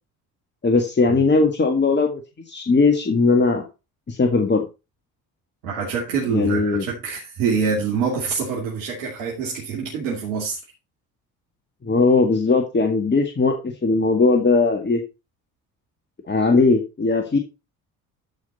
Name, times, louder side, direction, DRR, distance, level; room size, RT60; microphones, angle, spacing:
voice 1, 0.6-2.2 2.5-3.6 4.1-4.6 6.3-6.8 11.8-15.0 16.3-17.4, left 3 dB, 25° left, 1.9 m, -19 dB
voice 2, 5.6-10.6, right 5 dB, 75° right, 2.8 m, -25 dB
13.0 x 5.2 x 4.2 m
hypercardioid pair, 55°, 43 cm